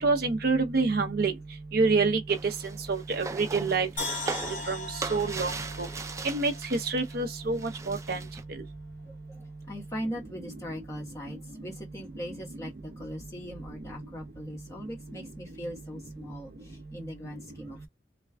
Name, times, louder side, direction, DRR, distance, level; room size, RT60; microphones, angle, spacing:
voice 1, 0.0-1.3 1.7-2.2 2.9-3.9 4.7-5.5 5.8-5.9 6.2-6.5 6.8-7.6 7.9-8.2, right 4 dB, 60° right, 0.7 m, -26 dB
sound 1, 2.3-7.1 7.4-8.4, right 3 dB, 15° right, 0.3 m, -39 dB
sound 2, 4.0-7.2 7.5-7.6, left 2 dB, 50° left, 1.5 m, -38 dB
voice 2, 9.7-17.9, equal, 20° left, 1.4 m, -40 dB
3.3 x 2.3 x 3.3 m
head